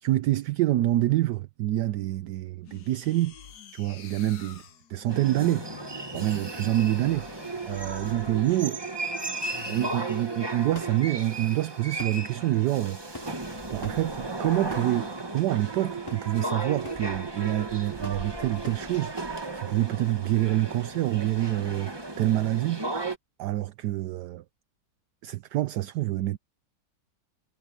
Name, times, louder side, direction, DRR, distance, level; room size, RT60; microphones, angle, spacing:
voice 1, 0.0-3.3 3.7-4.6 4.9-5.6 6.1-7.3 7.6-8.9 9.7-13.3 13.7-19.1 19.5-22.8 23.4-24.4 25.2-26.4, right 15 dB, 75° right, 1.2 m, -27 dB
sound 1, 2.6-8.6 9.5-10.1, left 9 dB, 65° left, 1.7 m, -47 dB
sound 2, 5.1-23.2, right 2 dB, 15° right, 1.4 m, -35 dB
sound 3, 9.5-19.6, left 1 dB, 10° left, 2.9 m, -47 dB
omnidirectional pair, 1.9 m